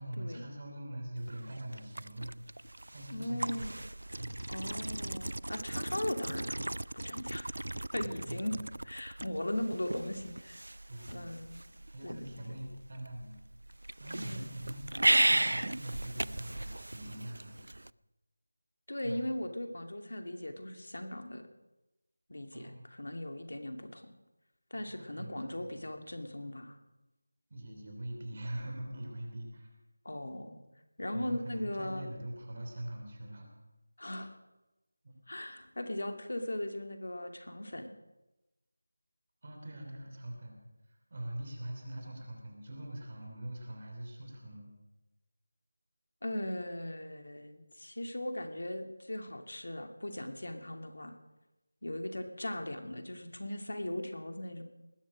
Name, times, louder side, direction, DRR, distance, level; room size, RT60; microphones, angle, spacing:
voice 1, 0.0-2.4 2.9-3.7 4.2-4.4 8.0-8.5 10.9-11.2 11.9-13.4 14.0-17.6 19.0-19.3 22.5-22.9 24.7-25.9 27.5-29.7 31.1-33.5 35.0-35.2 39.4-40.6 40.9-44.7, right 1 dB, 35° right, 2 dB, 3.2 m, -43 dB
sound 1, 1.2-17.9, right 1 dB, 85° right, 0.4 m, -36 dB
voice 2, 3.1-3.8 4.5-6.6 6.9-8.5 8.8-10.6 11.1-11.5 12.0-12.6 14.1-14.5 18.9-21.4 22.3-24.1 24.7-26.8 30.0-30.6 31.0-32.1 34.0-34.3 35.3-38.0 46.2-51.1 51.8-54.6, left 1 dB, 75° left, 6 dB, 2.5 m, -38 dB
19.5 x 11.5 x 6.3 m, 1.0 s
figure-of-eight pair, 175°, 0 cm